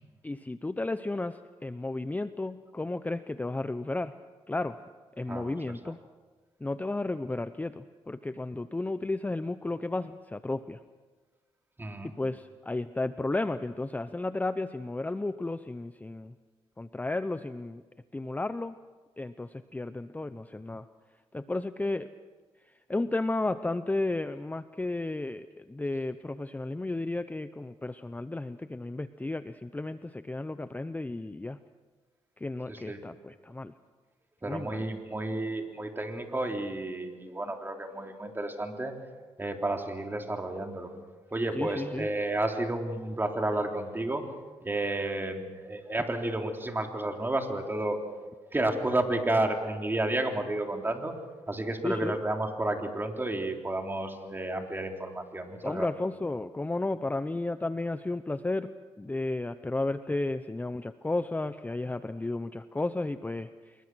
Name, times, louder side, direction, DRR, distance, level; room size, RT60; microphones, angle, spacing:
voice 1, 0.2-4.1 4.5-4.8 5.2-6.0 6.6-10.8 12.0-16.3 16.8-17.8 18.1-18.8 19.2-20.9 21.3-22.1 22.9-31.6 32.4-33.7 34.4-34.8 41.5-42.1 51.8-52.1 55.6-58.7 59.0-63.7, left 2 dB, 15° left, 12 dB, 0.7 m, -33 dB
voice 2, 11.8-12.1 32.7-33.0 34.4-38.9 39.4-40.9 41.3-44.2 44.6-48.0 48.5-51.1 51.5-55.9, right 2 dB, 20° right, 3 dB, 3.6 m, -31 dB
26.0 x 22.0 x 6.3 m, 1.4 s
cardioid pair, 80°, 12 cm